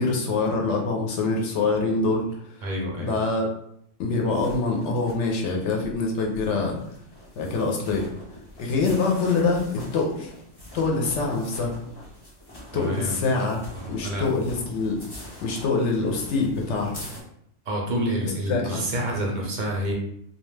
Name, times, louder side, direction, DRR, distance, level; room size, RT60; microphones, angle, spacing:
voice 1, 0.0-2.3 3.0-3.5 4.0-6.8 7.4-8.1 8.6-9.7 9.9-10.3 10.7-11.7 12.7-13.6 13.9-15.0 15.4-17.0 18.5-18.9, left 3 dB, 65° left, 0 dB, 0.8 m, -24 dB
voice 2, 2.6-3.2 12.7-13.2 13.7-14.3 17.7-19.9, equal, 55° right, -1 dB, 0.5 m, -28 dB
sound 1, 4.3-17.2, left 1 dB, 35° left, 0.3 m, -44 dB
2.4 x 2.2 x 3.1 m, 0.72 s
omnidirectional pair, 1.4 m